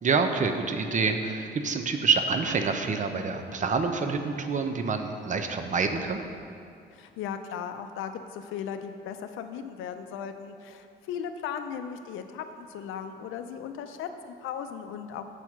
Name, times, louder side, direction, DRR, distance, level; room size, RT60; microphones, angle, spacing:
voice 1, 0.0-6.2, right 4 dB, 40° right, 6 dB, 0.7 m, -27 dB
voice 2, 6.9-15.3, left 8 dB, 90° left, 8 dB, 0.5 m, -37 dB
8.0 x 4.4 x 5.9 m, 2.5 s
cardioid pair, 90°, 20 cm